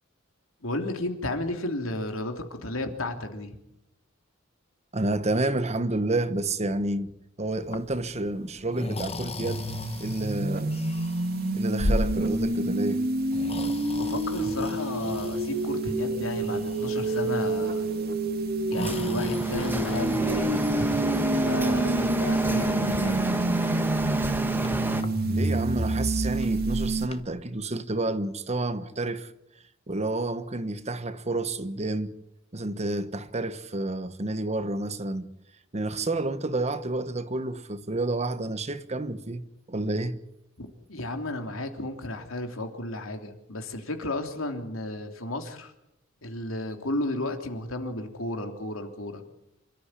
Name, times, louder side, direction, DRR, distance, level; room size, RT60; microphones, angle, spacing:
voice 1, 0.6-3.6 14.0-17.9 18.7-21.0 21.4-23.3 40.6-45.7 46.2-49.2, left 1 dB, 80° left, 3.3 m, -33 dB
voice 2, 4.9-7.1 7.4-9.7 10.0-10.8 11.5-13.1 25.3-29.3 29.9-32.1 32.5-35.3 35.7-40.2, right 2 dB, 30° right, 1.2 m, -29 dB
Breathing, 7.5-27.2, left 1 dB, 30° left, 1.3 m, -38 dB
sound 1, 9.4-27.1, right 2 dB, 50° right, 1.9 m, -28 dB
Printer, 18.8-25.0, right 1 dB, 10° right, 1.7 m, -30 dB
27.5 x 13.5 x 9.9 m
head